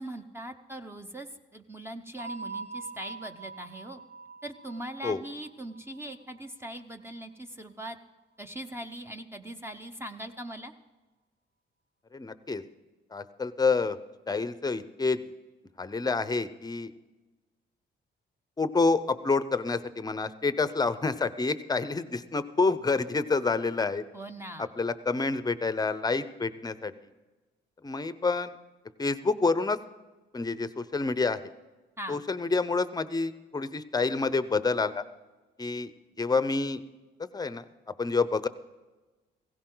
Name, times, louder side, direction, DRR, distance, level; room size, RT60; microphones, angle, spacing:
voice 1, 0.0-4.0 4.4-8.0 8.4-10.7 24.1-24.7 32.0-32.2, right 1 dB, 10° right, 6 dB, 0.9 m, -41 dB
sound 1, 2.2-6.8, right 4 dB, 35° right, 1.2 m, -43 dB
voice 2, 12.1-12.6 13.1-14.0 14.3-15.2 15.8-16.9 18.6-24.0 24.6-26.9 27.8-28.5 29.0-29.8 30.3-31.4 32.1-35.0 35.6-35.9 36.2-36.8 37.3-37.6 38.0-38.5, left 4 dB, 20° left, 14 dB, 0.8 m, -28 dB
16.5 x 16.0 x 3.9 m, 1.2 s
cardioid pair, 90°, 20 cm